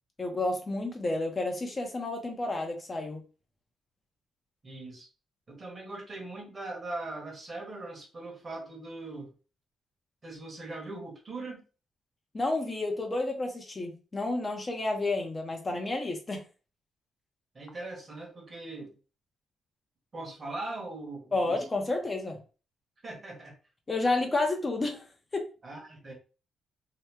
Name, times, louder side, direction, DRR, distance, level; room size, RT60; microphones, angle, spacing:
voice 1, 0.2-3.2 12.3-16.4 21.3-22.4 23.9-25.4, left 2 dB, 30° left, 2 dB, 0.7 m, -30 dB
voice 2, 4.6-5.1 5.5-9.3 10.2-11.6 17.5-18.9 20.1-21.6 23.0-23.6 25.6-26.1, right 2 dB, 35° right, 1 dB, 1.2 m, -40 dB
2.9 x 2.1 x 3.3 m, 0.34 s
cardioid pair, 95°, 0 cm